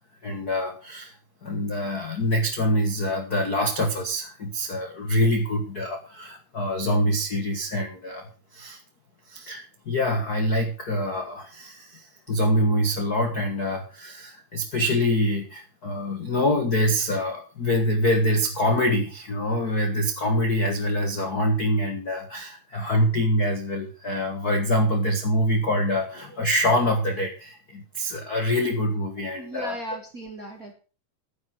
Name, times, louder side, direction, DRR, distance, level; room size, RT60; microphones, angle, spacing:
voice 1, 0.2-1.1 1.4-8.3 8.5-8.8 9.3-29.7, equal, 50° left, 4 dB, 1.1 m, -25 dB
voice 2, 29.3-30.7, right 1 dB, 35° right, 2 dB, 1.5 m, -36 dB
11.0 x 9.7 x 6.1 m, 0.35 s
omnidirectional pair, 4.1 m